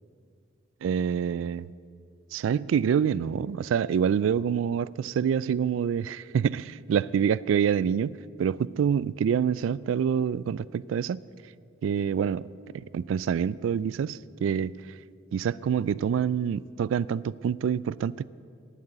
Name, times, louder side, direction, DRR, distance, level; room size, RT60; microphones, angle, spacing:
voice 1, 0.8-1.7 2.3-11.2 11.8-12.5 12.7-14.7 15.3-18.3, right 7 dB, 90° right, 0.3 m, -26 dB
10.5 x 9.2 x 8.4 m
head